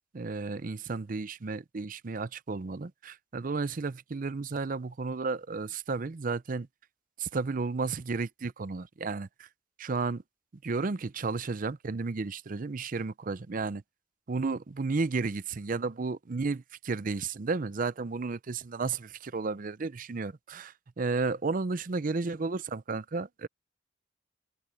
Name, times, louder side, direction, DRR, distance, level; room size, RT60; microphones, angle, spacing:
voice 1, 0.1-6.7 7.2-9.5 9.8-10.2 10.6-13.8 14.3-23.5, right 4 dB, 45° right, 0.5 m, -33 dB
head